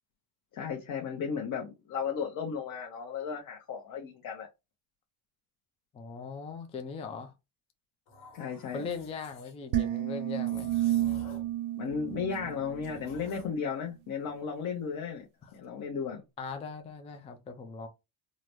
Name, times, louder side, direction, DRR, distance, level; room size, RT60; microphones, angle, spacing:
voice 1, 0.5-4.5 8.3-8.9 11.8-15.2 15.5-16.2, left 6 dB, 45° left, 0.8 m, -35 dB
voice 2, 5.9-7.3 8.7-10.7 15.4-15.5 16.4-17.9, left 5 dB, 15° left, 0.4 m, -40 dB
sound 1, 8.1-9.5 10.4-11.6 11.8-13.6, equal, 80° left, 1.2 m, -49 dB
sound 2, 9.7-13.1, right 13 dB, 80° right, 0.5 m, -31 dB
3.7 x 2.1 x 2.9 m
cardioid pair, 125°, 46 cm